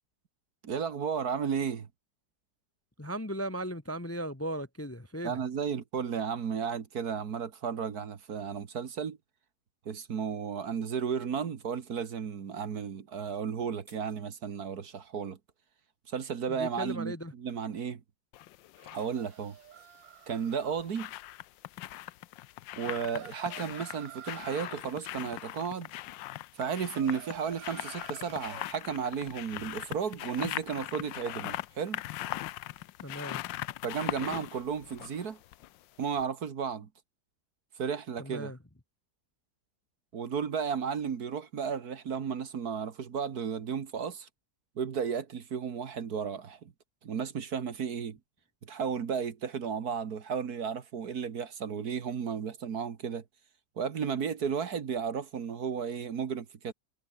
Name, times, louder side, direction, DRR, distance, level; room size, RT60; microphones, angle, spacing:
voice 1, 0.6-1.9 5.2-9.2 9.9-15.4 16.1-18.0 18.9-19.6 20.3-21.1 22.8-25.9 26.6-32.0 33.8-35.4 36.0-36.9 37.8-38.5 40.1-44.3 44.8-46.7 47.0-48.2 48.6-53.2 53.8-56.7, right 6 dB, 60° right, 1.9 m, -34 dB
voice 2, 3.0-5.4 16.5-17.3 33.0-33.5 38.2-38.6, right 1 dB, 10° left, 1.0 m, -37 dB
sound 1, 13.2-14.7 18.7-20.2, right 1 dB, 25° right, 5.7 m, -65 dB
sound 2, 18.3-19.1 20.3-35.8 36.2-36.3, left 15 dB, 85° left, 1.4 m, -40 dB
sound 3, 18.8-20.8 22.8-24.8 26.6-28.7, right 12 dB, 85° right, 1.6 m, -49 dB
omnidirectional pair, 1.9 m